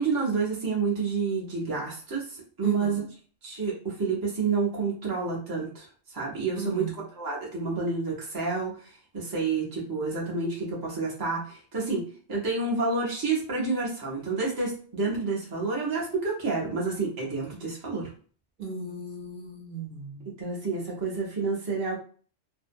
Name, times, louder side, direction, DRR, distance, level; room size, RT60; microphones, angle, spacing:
voice 1, 0.0-3.0 3.4-12.0 12.3-18.1 20.4-22.0, right 4 dB, 25° right, -4 dB, 0.6 m, -29 dB
voice 2, 2.6-3.0 6.6-6.9 18.6-20.2, right 4 dB, 50° right, -2 dB, 0.9 m, -36 dB
2.6 x 2.0 x 2.5 m, 0.41 s
omnidirectional pair, 1.2 m